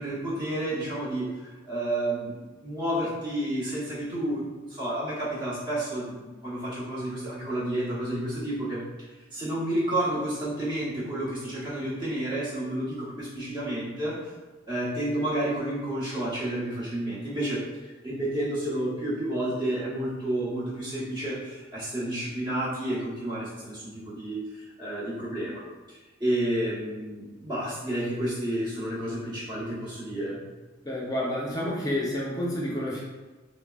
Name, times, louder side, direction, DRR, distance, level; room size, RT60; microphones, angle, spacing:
voice 1, 0.0-8.8 9.3-14.3 14.7-25.6 25.9-30.4, right 1 dB, 25° right, -9 dB, 1.0 m, -30 dB
voice 2, 30.8-33.0, left 1 dB, 20° left, -4 dB, 0.5 m, -29 dB
3.6 x 2.0 x 2.3 m, 1.2 s
head